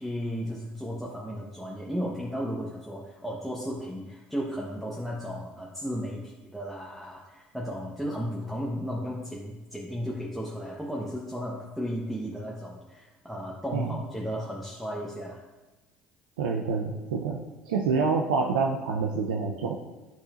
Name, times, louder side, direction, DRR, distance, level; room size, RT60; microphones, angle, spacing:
voice 1, 0.0-15.4, equal, ahead, -4 dB, 1.0 m, -34 dB
voice 2, 16.4-19.8, right 4 dB, 85° right, 0 dB, 0.5 m, -27 dB
10.5 x 4.1 x 2.5 m, 1.1 s
hypercardioid pair, 65°, 4 cm